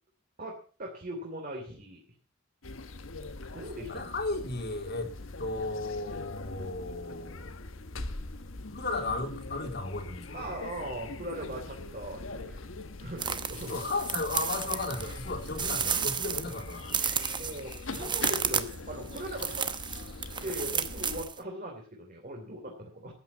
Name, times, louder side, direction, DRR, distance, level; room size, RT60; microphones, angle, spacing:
voice 1, 0.4-2.0 3.5-4.0 10.3-12.6 12.9-13.8 17.4-19.7 20.4-23.1, right 1 dB, 45° right, 0 dB, 3.1 m, -39 dB
sound 1, 2.6-21.2, left 3 dB, 75° left, 1.3 m, -42 dB
voice 2, 3.9-5.1 5.4-7.6 8.7-10.5 13.7-17.2, left 3 dB, 55° left, 4 dB, 3.1 m, -35 dB
sound 2, 13.2-21.4, right 7 dB, 25° right, 0.9 m, -32 dB
13.5 x 9.1 x 7.0 m, 0.41 s
head